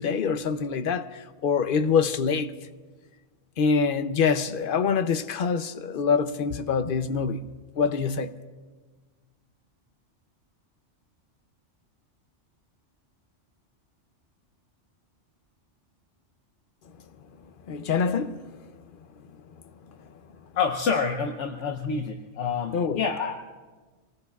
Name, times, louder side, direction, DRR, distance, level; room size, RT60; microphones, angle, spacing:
voice 1, 0.0-2.5 3.6-7.4 7.8-8.3 17.7-18.4 22.7-23.1, left 5 dB, 55° left, 0.7 m, -25 dB
voice 2, 20.5-23.5, left 5 dB, 75° left, 1.1 m, -28 dB
27.5 x 18.5 x 2.4 m
omnidirectional pair, 1.2 m